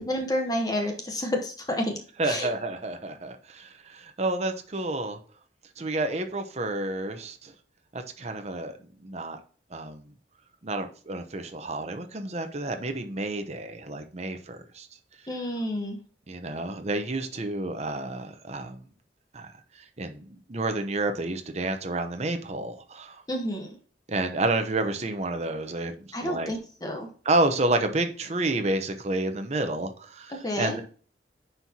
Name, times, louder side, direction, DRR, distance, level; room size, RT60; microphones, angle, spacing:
voice 1, 0.0-2.0 2.2-2.5 15.3-16.0 23.3-23.8 26.1-27.1 30.3-30.8, left 1 dB, 20° left, 3 dB, 0.9 m, -30 dB
voice 2, 2.2-5.2 5.8-7.5 7.9-8.7 9.0-9.4 9.7-10.1 10.6-14.9 16.3-18.8 19.3-19.5 20.0-23.2 24.1-25.9 26.2-26.5 27.2-30.8, right 2 dB, 35° right, 6 dB, 0.8 m, -30 dB
9.6 x 4.6 x 2.8 m, 0.42 s
head